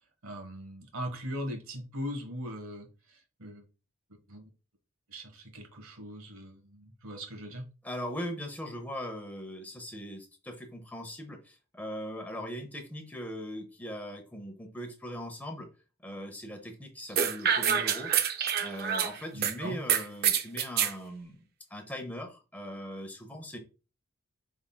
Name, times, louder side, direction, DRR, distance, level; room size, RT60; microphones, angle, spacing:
voice 1, 0.2-3.6 4.3-4.5 5.1-7.7 19.3-19.8, equal, 85° right, 4 dB, 1.2 m, -40 dB
voice 2, 7.8-15.7 16.0-18.1 18.6-21.4 21.7-23.6, equal, 10° left, 4 dB, 0.8 m, -40 dB
sound 1, 17.2-19.5 19.9-20.9, right 8 dB, 45° right, 0.4 m, -27 dB
5.3 x 3.6 x 2.2 m, 0.33 s
head